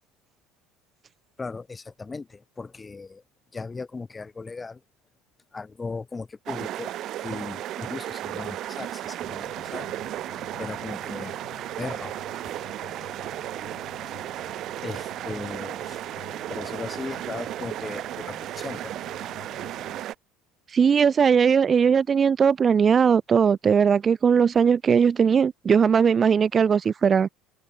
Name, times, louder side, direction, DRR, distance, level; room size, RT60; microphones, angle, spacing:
voice 1, 1.4-3.2 3.5-4.8 5.5-6.9 7.2-9.9 10.6-11.4 11.8-12.4 14.8-16.0 16.5-18.9, left 4 dB, 20° left, 1.5 m, -37 dB
sound 1, 6.5-20.1, right 13 dB, 55° right, 1.8 m, -34 dB
sound 2, 9.2-20.0, left 19 dB, 65° left, 2.0 m, -49 dB
voice 2, 20.7-27.3, right 6 dB, 35° right, 0.5 m, -19 dB
hypercardioid pair, 70°, 0 cm